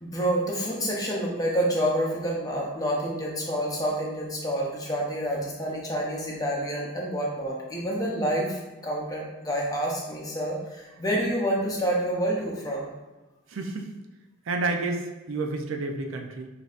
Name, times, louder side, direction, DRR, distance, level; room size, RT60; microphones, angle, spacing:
voice 1, 0.0-12.9, equal, 15° left, -2 dB, 0.6 m, -28 dB
voice 2, 13.5-13.9 14.5-16.5, right 3 dB, 80° right, 4 dB, 0.5 m, -30 dB
6.0 x 2.7 x 2.4 m, 1.1 s
head